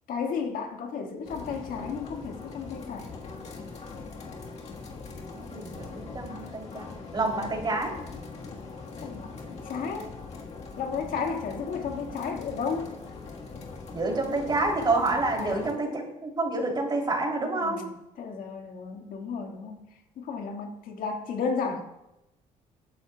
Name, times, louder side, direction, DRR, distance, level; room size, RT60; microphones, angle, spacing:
voice 1, 0.1-3.1 9.0-10.1 10.8-12.9 15.4-15.6 17.6-19.8 20.2-21.8, left 5 dB, 70° left, 3 dB, 2.0 m, -33 dB
sound 1, 1.2-15.7, left 4 dB, 45° left, 1.7 m, -41 dB
voice 2, 5.3-7.9 13.9-17.8, right 2 dB, 30° right, 1 dB, 3.3 m, -28 dB
20.0 x 9.7 x 2.4 m, 0.92 s
cardioid pair, 85°, 15 cm